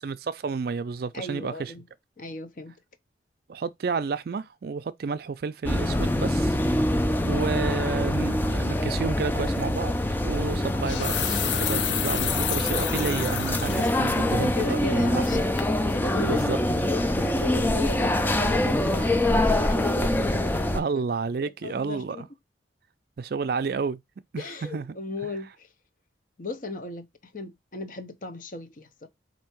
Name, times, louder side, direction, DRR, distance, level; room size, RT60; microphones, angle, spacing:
voice 1, 0.0-1.7 3.5-6.6 7.2-9.9 10.2-15.5 16.2-16.6 20.7-22.3 23.2-24.0 24.3-24.9, right 5 dB, 55° right, 0.4 m, -31 dB
voice 2, 1.1-1.9 2.2-2.7 10.5-10.7 14.3-15.4 15.9-21.0 21.6-22.3 24.4-25.7 26.4-29.1, left 2 dB, 45° left, 0.7 m, -36 dB
sound 1, 5.6-20.8, left 1 dB, 10° left, 0.4 m, -25 dB
sound 2, 9.5-9.6 10.6-14.0 14.4-14.5 15.0-15.3 15.6-15.7, left 9 dB, 85° left, 0.5 m, -30 dB
4.4 x 2.7 x 4.4 m
head